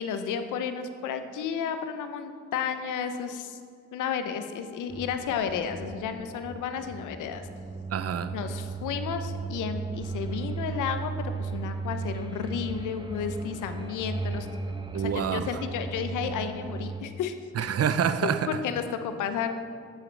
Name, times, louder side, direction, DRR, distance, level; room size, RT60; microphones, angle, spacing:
voice 1, 0.0-3.6 3.9-7.5 8.3-11.1 11.4-14.5 14.9-17.3 18.2-18.3 18.6-19.6, left 7 dB, 85° left, 9 dB, 0.7 m, -32 dB
sound 1, 4.9-17.0, right 4 dB, 15° right, 0.8 m, -36 dB
voice 2, 7.9-8.4 14.9-15.6 17.6-18.5, right 8 dB, 55° right, 12 dB, 0.6 m, -27 dB
12.0 x 7.8 x 3.3 m, 2.2 s
supercardioid pair, 50°, 30 cm